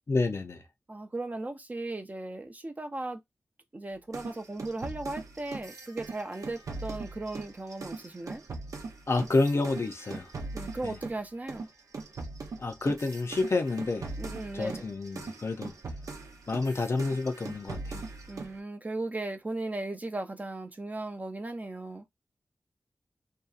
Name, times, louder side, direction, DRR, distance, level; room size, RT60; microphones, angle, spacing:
voice 1, 0.1-0.6 9.1-10.3 10.8-11.0 12.6-14.1 14.5-15.7 16.5-18.0, left 3 dB, 50° left, 0.5 m, -29 dB
voice 2, 0.9-3.2 3.7-8.4 10.5-11.7 14.2-14.8 18.3-22.0, right 2 dB, 30° right, 0.5 m, -37 dB
sound 1, 4.1-11.2 11.5-18.6, right 3 dB, 80° right, 0.6 m, -40 dB
2.7 x 2.3 x 2.4 m
wide cardioid pair, 100°, 6 cm